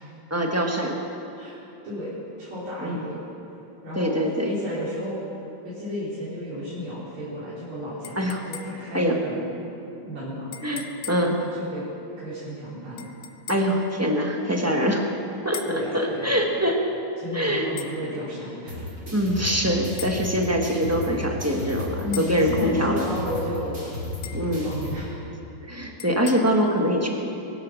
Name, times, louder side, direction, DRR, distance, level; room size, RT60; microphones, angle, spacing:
voice 1, 0.3-1.0 2.8-3.1 3.9-4.5 8.2-8.5 8.7-9.2 10.6-11.4 13.5-15.0 15.4-16.8 17.3-17.7 19.1-23.1 24.3-24.7 25.7-27.1, equal, 10° right, 1 dB, 0.9 m, -24 dB
voice 2, 1.8-3.2 3.8-5.2 5.6-9.4 10.1-10.5 11.2-11.8 12.2-13.0 14.6-14.9 15.6-16.6 17.2-18.9 22.0-23.9 24.5-25.2, left 1 dB, 85° right, -11 dB, 4.2 m, -33 dB
sound 1, 8.0-9.0 10.5-11.4 13.0-13.8 15.5-15.9 17.8-18.0 20.0-20.2 22.1-22.4 24.2-24.5 26.0-26.3, left 9 dB, 80° left, 0.6 m, -39 dB
sound 2, 18.7-24.9, left 1 dB, 30° right, 4.6 m, -34 dB
23.0 x 8.0 x 6.2 m, 2.9 s
omnidirectional pair, 2.3 m